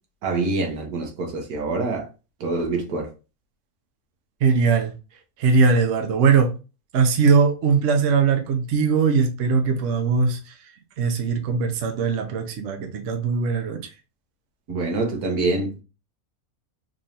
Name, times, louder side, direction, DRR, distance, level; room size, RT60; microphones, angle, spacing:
voice 1, 0.2-2.1 2.4-3.1 14.7-15.8, right 3 dB, 85° right, 1.4 m, -25 dB
voice 2, 4.4-4.9 5.4-6.5 6.9-10.6 11.0-13.8, right 5 dB, 60° right, 1.0 m, -20 dB
3.8 x 3.1 x 2.7 m
omnidirectional pair, 1.6 m